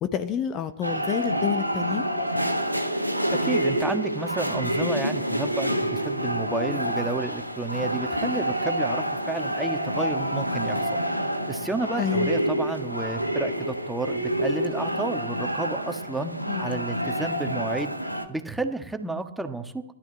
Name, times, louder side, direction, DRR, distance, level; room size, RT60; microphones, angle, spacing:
voice 1, 0.0-2.0 12.0-12.3 16.5-16.8, left 9 dB, 35° left, 10 dB, 1.0 m, -29 dB
sound 1, 0.8-18.3, equal, 90° right, 1.4 m, -27 dB
voice 2, 3.3-11.0 11.5-17.9 18.3-19.8, right 2 dB, 5° right, 7 dB, 1.5 m, -31 dB
16.5 x 12.0 x 7.4 m, 0.81 s
figure-of-eight pair, 90°, 0 cm